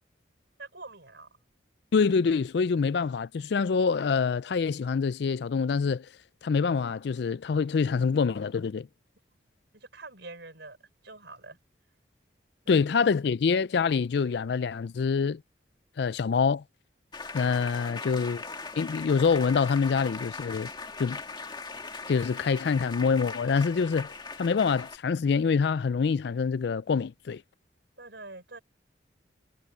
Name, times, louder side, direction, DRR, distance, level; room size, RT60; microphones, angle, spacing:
voice 1, 0.6-1.4 9.7-10.8 11.0-11.6 12.6-12.9 17.8-18.3 28.0-28.6, right 3 dB, 65° right, 5.2 m, -46 dB
voice 2, 1.9-6.1 6.4-8.9 12.7-15.4 16.0-16.6 17.3-18.4 18.8-20.7 21.0-21.2 22.1-27.4, left 5 dB, 60° left, 0.4 m, -26 dB
sound 1, 17.1-25.0, left 4 dB, 25° left, 2.0 m, -40 dB
head